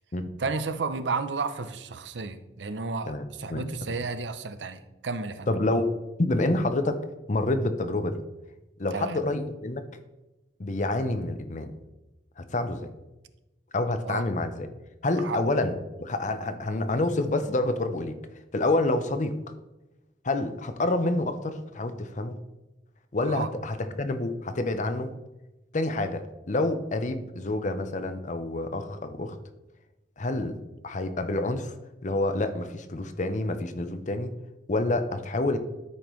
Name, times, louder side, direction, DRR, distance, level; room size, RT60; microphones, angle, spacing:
voice 1, 0.4-3.1 3.4-5.5 8.9-9.2 14.0-14.2 15.2-15.4 23.2-23.5, right 4 dB, 85° right, 11 dB, 0.6 m, -32 dB
voice 2, 5.5-7.0 7.3-8.2 8.8-9.8 10.6-11.7 12.4-12.9 13.7-14.7 15.0-18.2 18.5-19.3 20.2-22.4 23.1-25.1 25.7-29.4 30.2-30.6 30.8-31.7 32.0-34.3 34.7-35.6, left 2 dB, 45° left, 9 dB, 0.7 m, -28 dB
12.5 x 5.1 x 3.1 m, 1.0 s
head